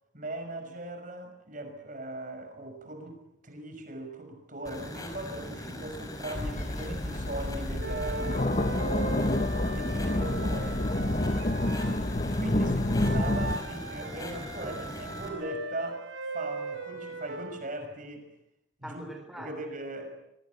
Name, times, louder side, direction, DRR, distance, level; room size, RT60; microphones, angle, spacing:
voice 1, 0.1-8.5 9.7-10.8 12.3-16.0 16.3-18.3 18.8-19.1 19.4-20.1, right 1 dB, 40° right, 6 dB, 6.0 m, -39 dB
sound 1, 4.7-15.3, left 1 dB, 20° left, 5.4 m, -41 dB
sound 2, 6.3-13.6, left 1 dB, 35° left, 1.2 m, -28 dB
sound 3, 7.8-12.1 13.0-17.6, right 3 dB, 75° right, 5.7 m, -39 dB
voice 2, 11.2-12.1 12.6-13.0 18.8-19.6, equal, ahead, 3 dB, 3.5 m, -45 dB
26.0 x 24.0 x 8.3 m, 0.81 s
head